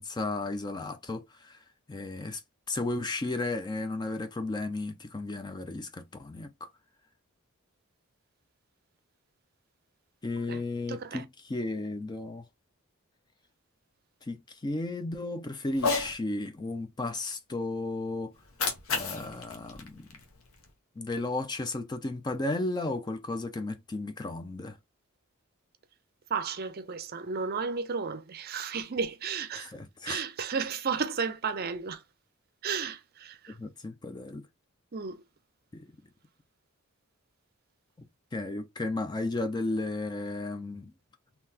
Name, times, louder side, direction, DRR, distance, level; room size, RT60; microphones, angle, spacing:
voice 1, 0.0-1.6 1.9-2.4 2.7-6.7 10.2-12.4 14.2-18.3 18.9-20.2 21.0-24.8 29.5-30.3 33.5-34.5 35.7-35.9 38.0-40.9, left 2 dB, 20° left, 0.3 m, -34 dB
voice 2, 10.9-11.2 26.3-29.7 30.1-32.0 32.6-33.6 34.9-35.2, right 5 dB, 45° right, 0.5 m, -33 dB
Cat, 15.7-16.1 18.3-20.7, left 4 dB, 70° left, 0.8 m, -33 dB
3.8 x 2.8 x 2.7 m
head